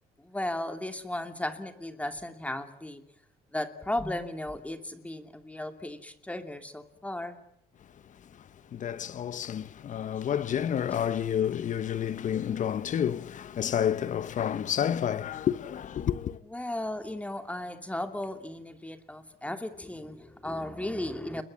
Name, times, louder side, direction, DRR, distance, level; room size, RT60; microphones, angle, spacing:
voice 1, 0.2-3.0 3.5-7.4 16.5-21.4, left 1 dB, 10° left, 2.8 m, -35 dB
voice 2, 8.3-16.4, left 9 dB, 50° left, 1.1 m, -30 dB
28.5 x 22.0 x 7.8 m
cardioid pair, 110°, 17 cm